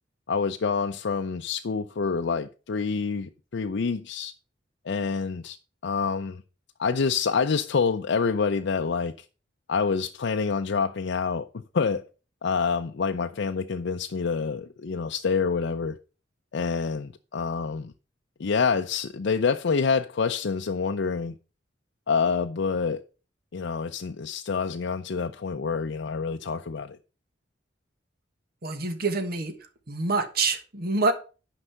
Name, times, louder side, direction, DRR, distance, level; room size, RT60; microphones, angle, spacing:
voice 1, 0.3-4.3 4.9-5.6 5.8-6.4 6.8-9.1 9.7-11.5 11.7-12.0 12.4-16.0 16.5-17.9 18.4-21.4 22.1-23.0 23.5-27.0, left 5 dB, 65° left, 0.5 m, -27 dB
voice 2, 28.6-29.5 29.9-31.1, right 3 dB, 55° right, 1.5 m, -26 dB
9.9 x 5.5 x 5.6 m
head